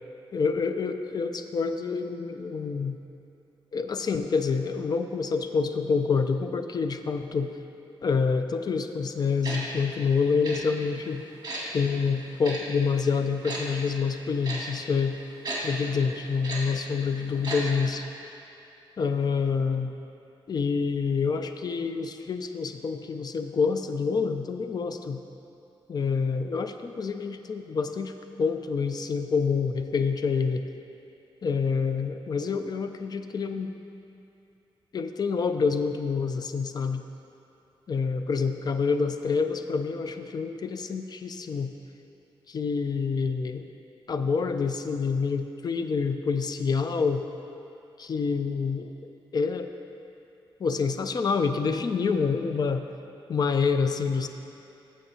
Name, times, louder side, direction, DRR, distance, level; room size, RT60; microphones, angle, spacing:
voice 1, 0.3-3.0 3.7-7.5 8.0-11.2 11.7-15.2 15.6-18.0 19.0-19.9 20.5-25.2 25.9-30.6 31.4-33.7 34.9-37.0 37.9-41.7 42.5-43.6 44.1-47.2 48.0-48.9 49.3-49.7 50.6-52.9 53.3-54.3, left 5 dB, 45° left, 8 dB, 0.4 m, -27 dB
Tick-tock, 9.4-9.6 10.4-10.6 11.4-11.6 12.4-12.6 13.4-13.6 14.4-14.6 15.4-15.6 16.4-16.6 17.4-17.6 17.9-18.0, right 2 dB, 45° right, 2.1 m, -33 dB
14.5 x 6.4 x 2.8 m, 2.8 s
wide cardioid pair, 125°, 9 cm